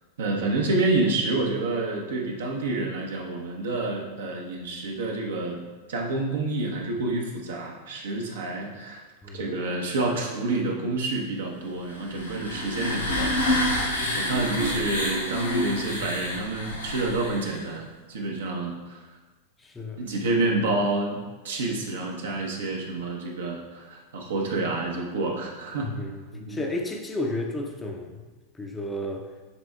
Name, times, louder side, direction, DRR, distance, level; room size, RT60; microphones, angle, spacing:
voice 1, 0.2-5.6 5.9-9.0 9.3-19.0 20.0-25.9 26.3-26.6, right 2 dB, 60° right, 0 dB, 0.9 m, -28 dB
sound 1, 11.9-17.7, left 1 dB, 85° left, 1.4 m, -28 dB
voice 2, 19.6-20.1 25.8-28.3 28.5-29.3, left 1 dB, 10° left, 1 dB, 0.6 m, -33 dB
9.8 x 4.3 x 2.3 m, 1.3 s
figure-of-eight pair, 90°, 0 cm